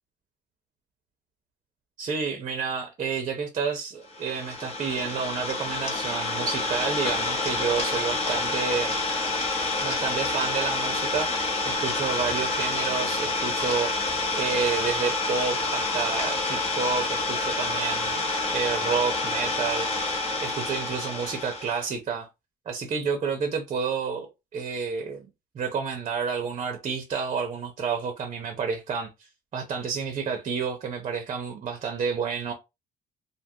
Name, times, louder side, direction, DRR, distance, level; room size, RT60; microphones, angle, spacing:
voice 1, 2.0-9.0 9.8-11.3 11.6-19.9 20.4-22.3 22.7-25.3 25.5-32.5, right 5 dB, 40° right, 0.6 m, -30 dB
Idling, 4.1-21.9, left 3 dB, 40° left, 0.9 m, -28 dB
2.5 x 2.4 x 2.7 m
cardioid pair, 110°, 17 cm